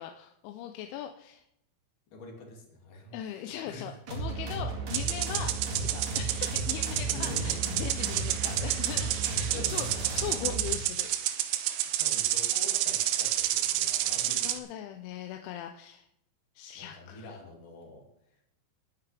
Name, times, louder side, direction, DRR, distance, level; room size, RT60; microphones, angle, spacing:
voice 1, 0.0-1.4 3.1-11.1 14.4-16.1 16.6-17.3, left 11 dB, 80° left, 5 dB, 2.9 m, -40 dB
voice 2, 2.1-4.0 7.1-7.6 9.5-9.9 12.0-14.4 16.7-18.1, left 2 dB, 50° left, 0 dB, 3.4 m, -46 dB
sound 1, 4.1-10.8, right 3 dB, 45° right, 2.8 m, -35 dB
sound 2, 4.9-14.6, right 13 dB, 80° right, 3.2 m, -30 dB
22.5 x 9.6 x 3.4 m, 0.77 s
omnidirectional pair, 5.9 m